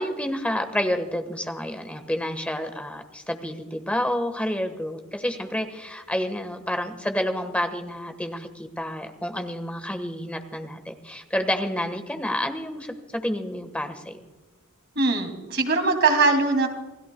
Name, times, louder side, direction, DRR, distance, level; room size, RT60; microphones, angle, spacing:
voice 1, 0.0-14.2, equal, 5° left, 7 dB, 1.4 m, -29 dB
voice 2, 15.0-16.7, right 3 dB, 55° right, 4 dB, 2.6 m, -21 dB
28.5 x 17.0 x 2.3 m, 1.2 s
head